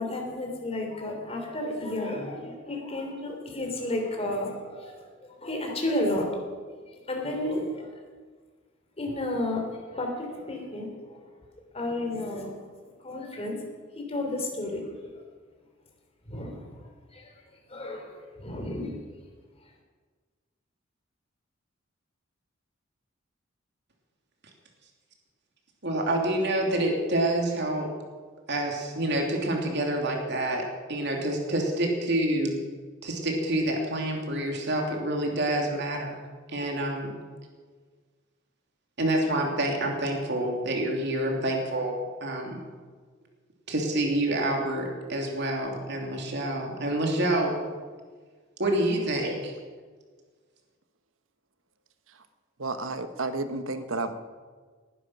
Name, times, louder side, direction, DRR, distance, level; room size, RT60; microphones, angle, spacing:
voice 1, 0.0-5.1 5.4-6.4 7.1-7.9 9.0-11.2 11.7-12.5 13.0-13.5 13.9-15.2 16.3-16.8 17.1-17.3 17.7-19.0, left 1 dB, 30° left, 2 dB, 3.4 m, -32 dB
voice 2, 25.8-27.9 28.5-32.6 33.0-37.2 39.0-42.6 43.7-47.7 48.6-49.6, right 1 dB, 60° right, 1 dB, 3.0 m, -27 dB
voice 3, 52.6-54.1, right 3 dB, 80° right, 10 dB, 1.2 m, -31 dB
19.5 x 11.0 x 6.2 m, 1.5 s
head